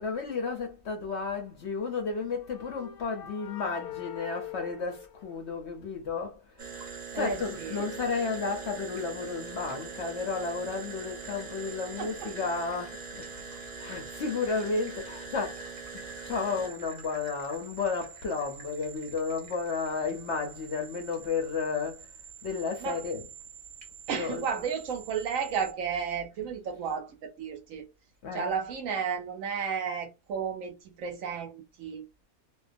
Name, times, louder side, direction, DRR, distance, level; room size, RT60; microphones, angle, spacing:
voice 1, 0.0-15.7 15.9-22.1 22.4-23.3 24.1-24.5 28.2-28.5, left 4 dB, 60° left, 0.8 m, -33 dB
sound 1, 1.9-5.8, left 11 dB, 85° left, 1.1 m, -44 dB
sound 2, 6.6-25.7, right 4 dB, 40° right, 0.8 m, -43 dB
voice 2, 7.1-7.9 12.0-12.3 22.8-23.0 24.1-27.8 28.3-32.0, right 6 dB, 70° right, 0.9 m, -33 dB
2.5 x 2.2 x 2.5 m
omnidirectional pair, 1.6 m